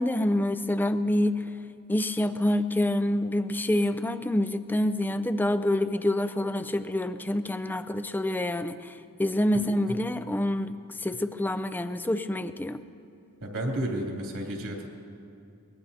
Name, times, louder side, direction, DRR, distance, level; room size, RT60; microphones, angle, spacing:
voice 1, 0.0-1.4 1.9-8.9 9.2-12.8, left 1 dB, 10° left, 10 dB, 0.4 m, -27 dB
voice 2, 13.4-14.9, right 1 dB, 75° right, -1 dB, 2.8 m, -31 dB
23.5 x 19.5 x 2.8 m, 2.5 s
head